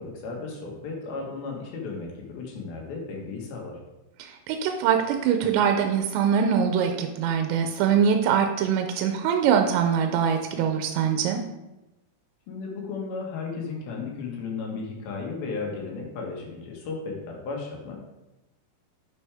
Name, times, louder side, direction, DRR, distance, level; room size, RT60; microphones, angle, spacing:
voice 1, 0.0-3.8 12.5-18.0, left 4 dB, 65° left, 0 dB, 2.9 m, -34 dB
voice 2, 4.2-11.4, right 7 dB, 90° right, 5 dB, 2.9 m, -23 dB
8.8 x 6.2 x 3.4 m, 0.99 s
omnidirectional pair, 5.0 m